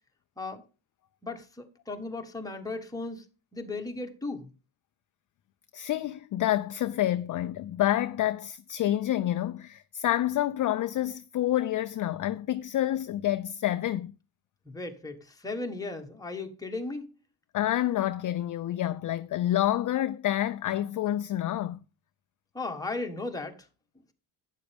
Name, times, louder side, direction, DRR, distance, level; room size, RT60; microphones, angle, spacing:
voice 1, 1.2-3.2 3.5-4.5 14.6-17.1 22.5-23.6, left 3 dB, 5° left, 1.3 m, -36 dB
voice 2, 5.7-14.1 17.5-21.8, left 13 dB, 40° left, 0.4 m, -28 dB
12.0 x 9.2 x 3.4 m
cardioid pair, 160°, 50 cm